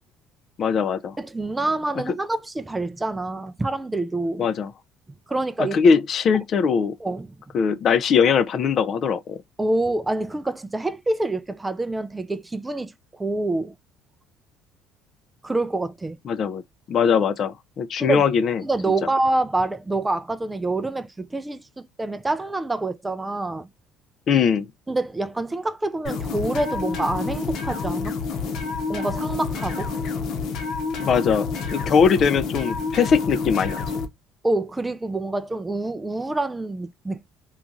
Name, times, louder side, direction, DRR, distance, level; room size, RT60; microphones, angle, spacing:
voice 1, 0.6-1.2 4.4-4.7 5.6-6.9 7.5-9.4 16.3-16.6 16.9-18.6 24.3-24.7 31.0-31.5 31.7-33.8, left 6 dB, 50° left, 0.4 m, -20 dB
voice 2, 1.2-4.4 5.3-5.8 7.0-7.3 9.6-13.7 15.4-16.2 18.0-18.3 18.6-23.7 24.9-28.1 28.9-29.9 34.4-37.3, right 2 dB, 15° right, 0.4 m, -26 dB
sound 1, 26.0-34.1, left 4 dB, 70° left, 0.9 m, -28 dB
2.9 x 2.4 x 3.7 m
cardioid pair, 100°, 0 cm